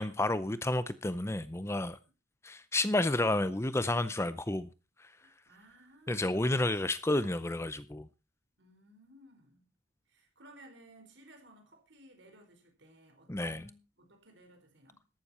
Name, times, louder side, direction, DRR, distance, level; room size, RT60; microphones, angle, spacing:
voice 1, 0.0-2.0 2.4-4.7 5.0-5.1 6.1-8.1 13.3-13.6, left 2 dB, 15° left, 0.5 m, -31 dB
voice 2, 5.2-6.5 8.6-9.7 10.1-15.0, right 1 dB, 70° right, 4.5 m, -58 dB
14.0 x 12.0 x 4.2 m
head